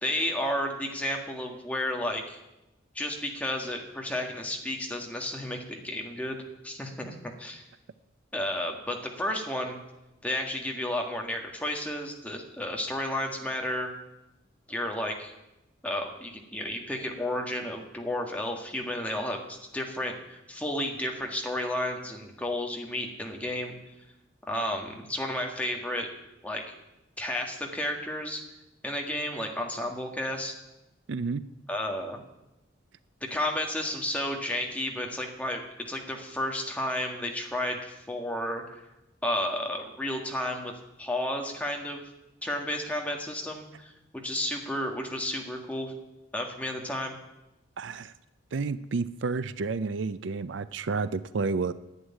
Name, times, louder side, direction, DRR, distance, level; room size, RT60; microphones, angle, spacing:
voice 1, 0.0-2.4 3.0-6.4 6.6-7.6 8.3-9.8 10.2-13.9 14.7-15.3 15.8-23.8 24.4-26.1 26.4-26.6 27.2-28.4 28.8-30.5 31.7-32.2 33.2-38.8 39.2-40.7 41.0-42.0 42.4-43.9 44.2-46.0 46.3-47.2, left 1 dB, 5° left, 1 dB, 1.7 m, -32 dB
voice 2, 31.1-31.4 47.8-48.1 48.5-51.7, right 4 dB, 65° right, 15 dB, 0.5 m, -30 dB
11.0 x 8.2 x 9.9 m, 0.93 s
head